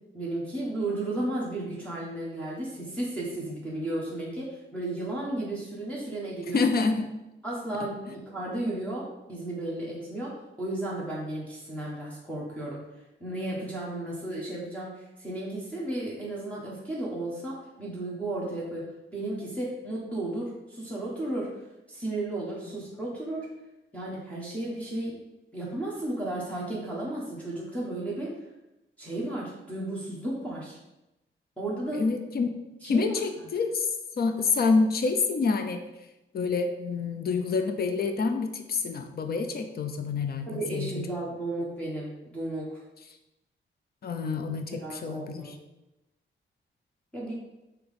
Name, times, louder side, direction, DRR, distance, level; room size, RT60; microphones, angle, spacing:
voice 1, 0.1-6.6 7.4-12.8 13.2-18.8 19.1-21.5 21.9-23.5 23.9-25.1 25.5-28.3 29.0-30.8 31.6-32.1 32.8-33.1 40.5-42.8 44.7-45.5 47.1-47.3, right 1 dB, 5° left, -6 dB, 1.3 m, -34 dB
voice 2, 6.5-7.1 31.9-32.5 32.8-33.9 34.2-35.8 36.3-41.0 44.0-45.6, left 4 dB, 50° left, 6 dB, 0.6 m, -27 dB
6.1 x 3.1 x 5.2 m, 0.95 s
wide cardioid pair, 155°, 21 cm